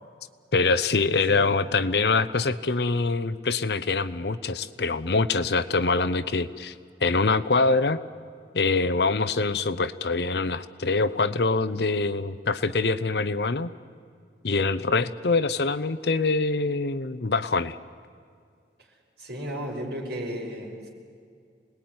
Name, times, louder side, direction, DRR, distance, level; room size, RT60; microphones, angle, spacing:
voice 1, 0.5-6.7 7.0-8.0 8.5-13.7 14.4-17.8, left 3 dB, 65° left, 13 dB, 0.8 m, -24 dB
voice 2, 19.2-20.9, equal, 65° right, -1 dB, 5.7 m, -34 dB
27.5 x 20.0 x 9.5 m, 2.2 s
head